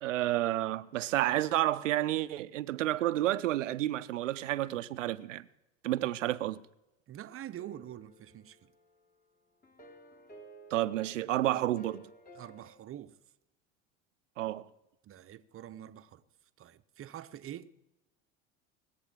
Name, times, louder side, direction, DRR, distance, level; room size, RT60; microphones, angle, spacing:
voice 1, 0.0-5.4 5.8-6.6 10.7-12.1 14.4-14.7, right 14 dB, 90° right, 0.7 m, -30 dB
voice 2, 7.1-8.7 12.3-13.1 15.0-16.2 16.6-17.7, right 11 dB, 35° right, 0.9 m, -46 dB
sound 1, 7.6-9.1 9.6-12.8, right 2 dB, 25° left, 3.4 m, -55 dB
19.5 x 8.5 x 7.3 m
hypercardioid pair, 80°, 36 cm